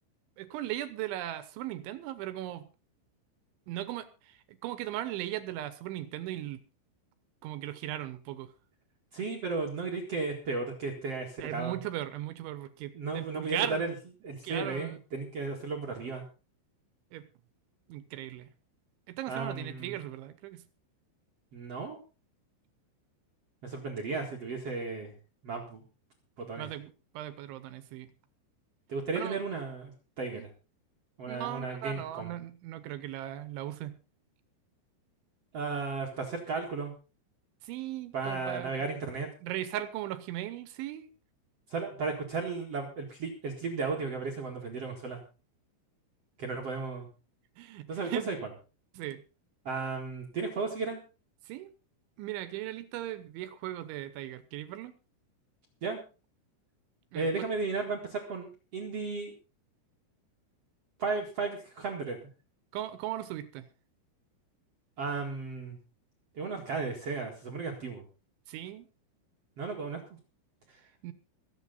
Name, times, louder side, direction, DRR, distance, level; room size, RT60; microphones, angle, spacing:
voice 1, 0.4-2.7 3.7-6.6 7.4-8.5 11.4-13.9 14.4-15.0 17.1-17.2 17.9-18.5 19.1-20.6 26.6-28.1 29.1-29.4 30.3-30.4 31.3-33.9 37.6-38.9 39.4-41.1 47.6-48.4 48.9-49.2 51.5-51.7 52.2-55.0 57.1-57.3 62.7-63.7 68.5-68.9 71.0-71.1, right 13 dB, 75° right, 13 dB, 3.1 m, -38 dB
voice 2, 9.1-11.8 12.9-13.9 14.2-16.2 19.3-20.0 21.5-22.0 23.6-25.1 25.4-25.8 26.4-26.7 28.9-30.5 31.2-32.3 35.5-36.9 38.1-39.3 41.7-45.2 46.4-47.1 47.9-48.4 49.6-51.0 55.8-56.0 57.1-59.3 61.0-62.3 65.0-65.8 66.3-68.0 69.6-70.0, right 4 dB, 55° right, 0 dB, 1.7 m, -34 dB
24.0 x 8.0 x 4.0 m, 0.33 s
omnidirectional pair, 5.9 m